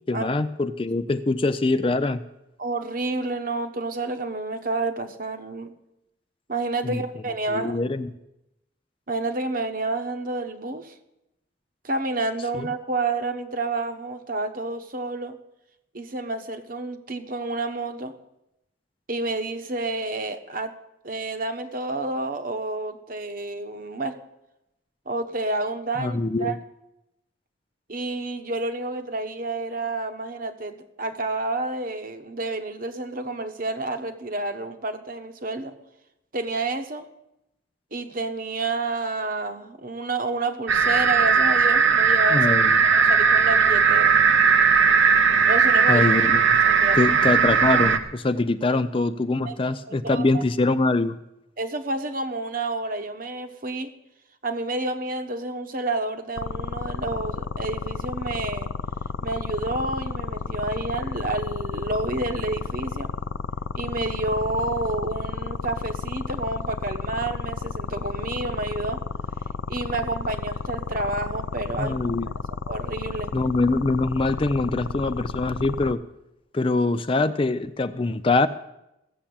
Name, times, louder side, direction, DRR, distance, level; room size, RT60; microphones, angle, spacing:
voice 1, 0.1-2.2 6.8-7.0 7.5-8.1 12.6-12.7 26.0-26.6 42.3-42.8 45.9-46.4 47.0-51.2 71.8-72.3 73.3-76.0 76.5-78.5, left 2 dB, 25° left, 12 dB, 0.4 m, -23 dB
voice 2, 2.6-5.7 6.5-7.8 9.1-11.0 11.8-15.4 15.9-18.1 19.1-20.7 21.0-24.1 25.1-26.6 27.9-35.7 36.3-37.1 37.9-42.5 42.9-44.1 45.5-46.0 46.7-47.0 48.7-48.8 49.4-49.6 49.9-50.4 51.6-53.9 54.4-58.7 59.2-63.1 63.7-69.0 69.7-72.1 72.7-73.3, right 2 dB, 45° right, 7 dB, 1.2 m, -29 dB
sound 1, 40.7-48.0, right 6 dB, 80° right, 1.0 m, -18 dB
sound 2, 56.4-75.9, left 5 dB, 80° left, 0.5 m, -31 dB
14.5 x 7.3 x 8.6 m, 0.88 s
head